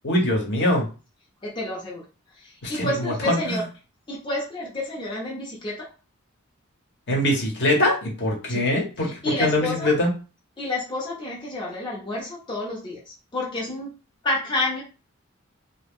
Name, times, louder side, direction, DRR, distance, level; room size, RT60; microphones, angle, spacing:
voice 1, 0.0-0.9 2.6-3.6 7.1-10.1, left 1 dB, 55° left, 0 dB, 1.0 m, -23 dB
voice 2, 1.4-2.0 2.4-3.6 4.1-5.9 8.5-8.7 9.0-9.9 10.6-13.9 14.2-14.8, left 2 dB, 25° left, -4 dB, 0.7 m, -29 dB
2.8 x 2.1 x 3.5 m, 0.33 s
head